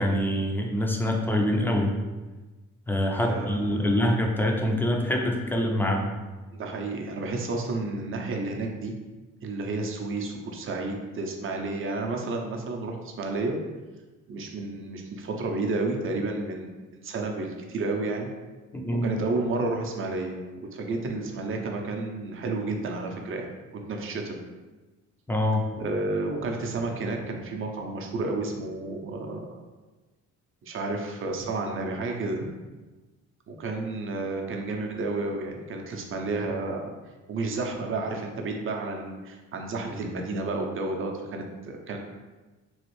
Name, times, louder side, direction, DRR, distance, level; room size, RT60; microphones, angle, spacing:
voice 1, 0.0-1.9 2.9-6.1 18.7-19.1 25.3-25.6, left 1 dB, 5° left, 0 dB, 0.5 m, -25 dB
voice 2, 3.2-4.0 6.5-9.0 9.4-13.6 14.3-16.7 16.9-18.3 19.0-20.4 20.7-24.4 25.8-29.5 30.6-32.5 33.5-36.8 37.3-42.0, right 3 dB, 45° right, 2 dB, 0.6 m, -31 dB
3.1 x 2.4 x 3.1 m, 1.2 s
cardioid pair, 90°, 30 cm